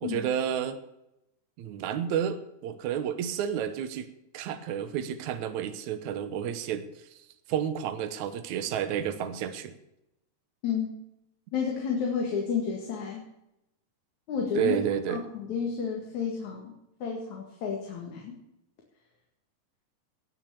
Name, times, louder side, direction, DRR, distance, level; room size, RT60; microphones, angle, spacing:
voice 1, 0.0-0.8 1.6-7.2 7.5-9.7 14.5-15.2, right 9 dB, 75° right, 10 dB, 2.4 m, -31 dB
voice 2, 11.5-13.2 14.3-14.8 15.1-18.3, left 6 dB, 70° left, 0 dB, 3.3 m, -31 dB
19.0 x 6.5 x 7.0 m, 0.86 s
omnidirectional pair, 3.6 m